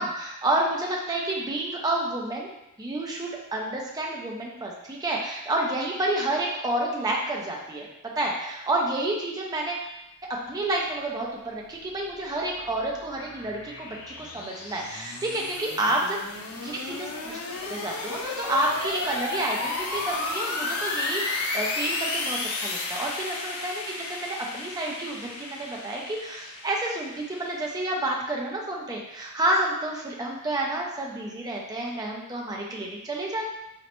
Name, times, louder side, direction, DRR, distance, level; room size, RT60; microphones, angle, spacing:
voice 1, 0.0-2.5 2.8-9.9 10.3-16.2 16.6-33.5, right 1 dB, 15° right, -2 dB, 0.4 m, -29 dB
sound 1, 11.8-27.8, left 3 dB, 70° left, 0.5 m, -33 dB
3.9 x 2.1 x 2.9 m, 0.89 s
head